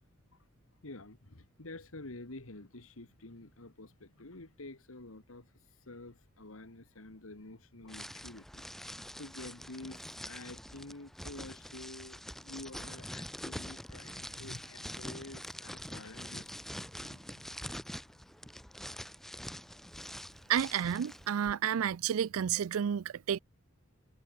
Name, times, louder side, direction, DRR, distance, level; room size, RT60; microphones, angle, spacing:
voice 1, 0.8-17.7, left 2 dB, 70° left, 2.0 m, -49 dB
sound 1, 7.9-21.3, equal, ahead, 1.4 m, -45 dB
voice 2, 20.5-23.4, right 9 dB, 75° right, 0.4 m, -31 dB
head